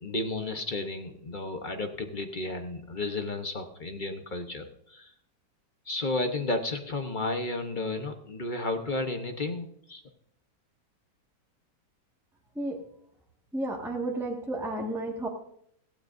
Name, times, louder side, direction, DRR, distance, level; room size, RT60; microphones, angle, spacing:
voice 1, 0.0-5.1 5.9-10.0, left 2 dB, 35° left, 6 dB, 0.9 m, -32 dB
voice 2, 13.5-15.3, right 1 dB, ahead, -1 dB, 1.6 m, -32 dB
17.0 x 15.5 x 2.6 m, 0.70 s
omnidirectional pair, 1.9 m